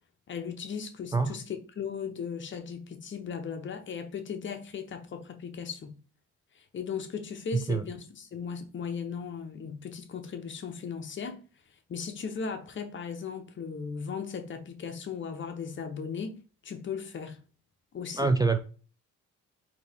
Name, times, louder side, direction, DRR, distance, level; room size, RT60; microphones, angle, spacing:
voice 1, 0.3-6.0 6.6-11.4 11.9-16.4 16.6-17.4 17.9-18.3, left 6 dB, 40° left, 0.7 m, -37 dB
voice 2, 7.5-7.9 18.1-18.6, right 4 dB, 15° right, 0.3 m, -25 dB
4.1 x 2.8 x 3.4 m
cardioid pair, 90°, 30 cm